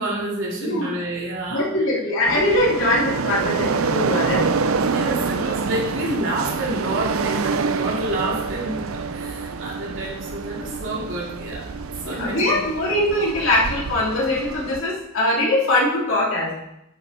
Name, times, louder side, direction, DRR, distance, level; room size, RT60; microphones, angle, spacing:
voice 1, 0.0-1.7 4.8-11.7 12.0-12.6, right 1 dB, 60° right, -4 dB, 2.9 m, -28 dB
voice 2, 1.5-4.4 12.1-16.5, left 1 dB, 70° left, -5 dB, 2.9 m, -21 dB
sound 1, 2.3-14.8, right 4 dB, 90° right, 0.6 m, -26 dB
10.5 x 6.8 x 4.3 m, 0.87 s
head